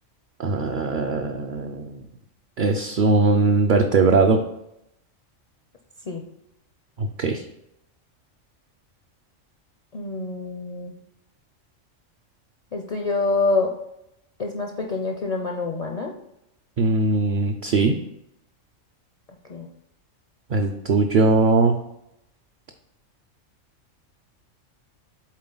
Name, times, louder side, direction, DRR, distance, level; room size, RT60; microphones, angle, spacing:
voice 1, 0.4-2.0 2.6-4.4 7.0-7.4 16.8-18.0 20.5-21.7, right 3 dB, 55° right, 3 dB, 0.6 m, -20 dB
voice 2, 9.9-10.9 12.7-13.8 14.4-16.1 19.4-19.7, left 3 dB, 50° left, 2 dB, 0.5 m, -26 dB
7.5 x 4.0 x 3.9 m, 0.83 s
omnidirectional pair, 1.3 m